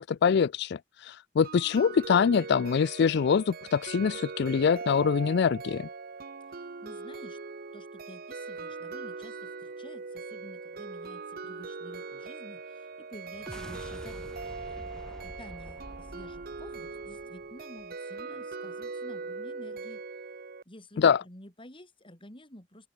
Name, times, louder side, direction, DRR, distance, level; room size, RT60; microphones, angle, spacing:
voice 1, 0.0-5.9 21.0-21.2, left 6 dB, 60° left, 0.4 m, -24 dB
sound 1, 1.4-20.6, right 4 dB, 50° right, 0.9 m, -41 dB
voice 2, 6.5-7.4 7.7-20.2 20.7-22.9, left 1 dB, 30° left, 7.6 m, -51 dB
sound 2, 13.3-17.9, equal, 5° left, 1.7 m, -47 dB
open air
head